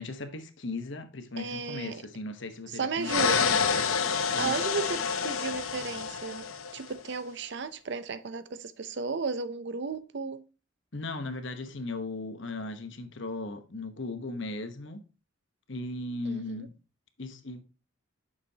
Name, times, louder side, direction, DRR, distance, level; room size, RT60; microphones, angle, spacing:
voice 1, 0.0-3.5 4.3-4.5 10.9-15.0 15.7-16.7 17.2-17.6, left 2 dB, 60° left, 1.0 m, -37 dB
voice 2, 1.4-2.0 2.7-3.6 4.4-6.4 6.7-10.4 16.3-16.7, right 4 dB, 55° right, 0.6 m, -34 dB
sound 1, 3.0-6.9, left 6 dB, 85° left, 0.8 m, -28 dB
8.3 x 6.8 x 2.8 m
head